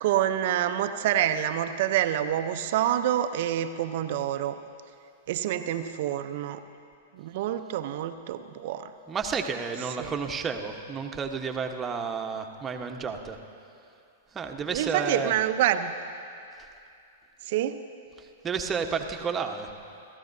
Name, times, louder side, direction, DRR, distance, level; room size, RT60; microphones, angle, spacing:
voice 1, 0.0-4.6 5.3-6.6 7.1-8.9 10.0-10.1 14.7-15.9 17.5-17.8, right 11 dB, 55° right, 9 dB, 0.7 m, -27 dB
voice 2, 9.1-13.4 14.3-15.3 18.4-19.7, right 5 dB, 20° right, 4 dB, 1.1 m, -31 dB
29.0 x 15.0 x 2.7 m, 2.6 s
hypercardioid pair, 105°, 0 cm